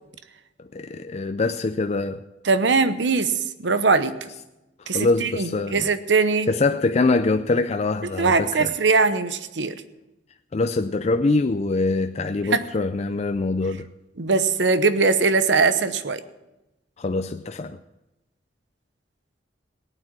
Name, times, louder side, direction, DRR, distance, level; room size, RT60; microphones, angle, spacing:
voice 1, 0.7-2.2 4.9-5.9 6.5-8.7 10.5-13.9 17.0-17.8, left 3 dB, 35° left, 0.4 m, -24 dB
voice 2, 2.4-3.3 3.6-4.1 4.9-6.5 8.2-9.7 12.5-12.6 14.2-16.2, right 4 dB, 75° right, 0.9 m, -21 dB
17.5 x 9.1 x 6.0 m
head